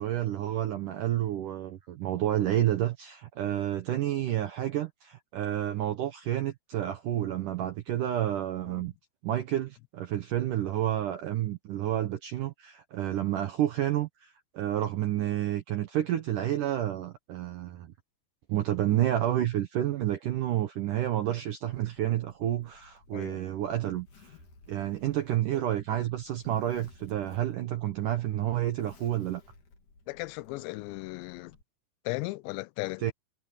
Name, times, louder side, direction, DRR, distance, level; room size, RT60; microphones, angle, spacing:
voice 1, 0.0-8.9 9.2-17.9 18.5-24.4 24.7-29.4 33.0-33.1, right 12 dB, 75° right, 1.9 m, -30 dB
Zipper (clothing), 21.7-31.6, left 4 dB, 45° left, 4.7 m, -57 dB
voice 2, 30.1-31.5 32.1-33.0, left 22 dB, 85° left, 2.8 m, -36 dB
omnidirectional pair, 5.1 m